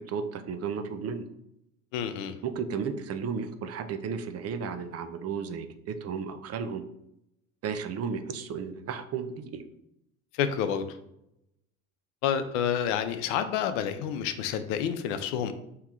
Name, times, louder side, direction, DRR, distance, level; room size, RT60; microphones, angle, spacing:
voice 1, 0.1-1.3 2.4-6.8 7.6-9.7, right 6 dB, 40° right, 9 dB, 0.6 m, -34 dB
voice 2, 1.9-2.3 10.4-10.9 12.2-15.5, left 8 dB, 80° left, 10 dB, 0.6 m, -29 dB
4.5 x 2.9 x 3.6 m, 0.81 s
hypercardioid pair, 80°, 37 cm